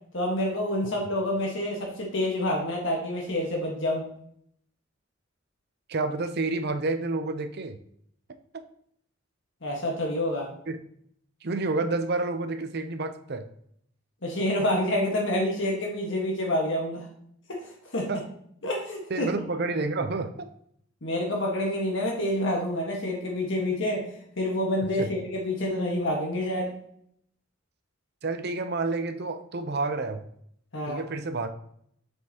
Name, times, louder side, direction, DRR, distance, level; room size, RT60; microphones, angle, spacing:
voice 1, 0.1-4.0 9.6-10.5 14.2-17.1 17.5-18.1 18.6-19.3 21.0-24.0 24.4-26.7 30.7-31.0, left 1 dB, 65° left, -1 dB, 1.4 m, -28 dB
voice 2, 5.9-7.8 10.7-10.8 11.4-13.5 18.1-18.2 19.1-20.5 25.0-25.1 28.2-30.2 30.9-31.6, right 3 dB, 55° right, 9 dB, 0.6 m, -29 dB
7.7 x 5.4 x 2.9 m, 0.68 s
head